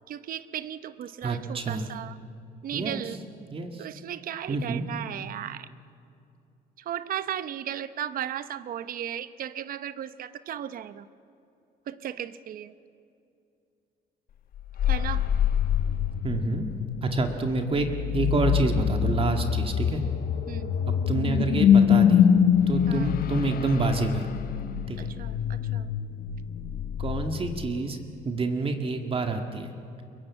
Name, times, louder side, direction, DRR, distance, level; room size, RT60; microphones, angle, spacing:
voice 1, 0.0-2.2 2.6-3.2 3.8-5.7 6.9-11.1 11.9-12.7 14.9-15.3 20.5-20.8 22.9-23.1 25.0-25.9, right 10 dB, 55° right, 14 dB, 0.9 m, -35 dB
voice 2, 1.2-1.9 2.7-3.2 3.5-3.9 4.5-4.9 16.2-16.7 17.0-17.9 18.1-20.0 21.1-22.2 22.7-24.3 24.9-25.1 27.0-28.0 28.2-29.7, right 4 dB, 35° right, 5 dB, 1.9 m, -28 dB
sound 1, 14.6-28.0, left 8 dB, 60° left, 1.1 m, -25 dB
23.5 x 21.5 x 8.5 m, 2.6 s
cardioid pair, 110°, 17 cm